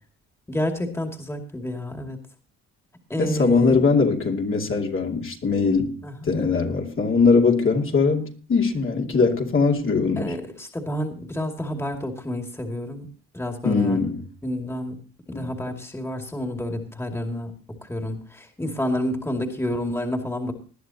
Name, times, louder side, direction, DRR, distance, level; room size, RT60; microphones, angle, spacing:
voice 1, 0.5-2.2 3.1-3.8 6.0-6.1 10.2-13.1 13.3-14.1 14.4-15.0 15.3-17.5 17.8-20.5, left 1 dB, 10° left, 4 dB, 2.4 m, -29 dB
voice 2, 3.2-10.3 13.6-14.3 15.3-15.5, left 4 dB, 45° left, 1 dB, 2.7 m, -21 dB
20.0 x 11.0 x 2.9 m, 0.39 s
cardioid pair, 90°, 30 cm